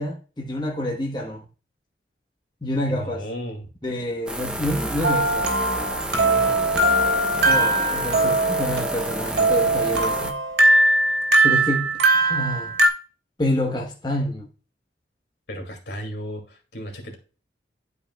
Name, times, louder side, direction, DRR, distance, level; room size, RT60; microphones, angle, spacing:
voice 1, 0.0-1.4 2.6-3.2 3.8-5.5 7.4-10.4 11.4-12.7 13.4-14.5, left 1 dB, 25° left, 1.1 m, -27 dB
voice 2, 2.9-3.7 6.2-6.6 15.5-17.2, equal, 70° left, 2.4 m, -35 dB
sound 1, 4.3-10.3, right 1 dB, 5° right, 0.8 m, -30 dB
sound 2, 5.0-12.9, right 2 dB, 70° right, 1.7 m, -20 dB
12.0 x 5.1 x 2.3 m
head